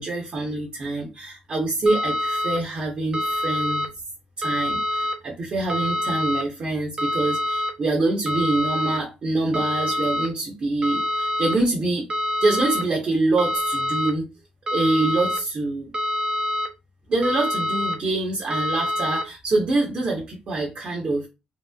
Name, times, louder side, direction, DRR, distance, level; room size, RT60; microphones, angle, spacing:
voice 1, 0.0-3.9 4.4-12.1 12.4-14.3 14.7-15.9 17.1-21.3, right 2 dB, 50° right, -3 dB, 0.9 m, -25 dB
sound 1, 1.9-2.6 3.1-3.9 4.4-5.1 5.7-6.4 7.0-7.7 8.3-9.0 9.5-10.3 10.8-11.6 12.1-12.8 13.4-14.1 14.7-15.4 15.9-16.7 17.2-18.0 18.5-19.2, left 1 dB, 30° right, 0.5 m, -25 dB
2.9 x 2.1 x 2.3 m, 0.26 s
cardioid pair, 90°, 3 cm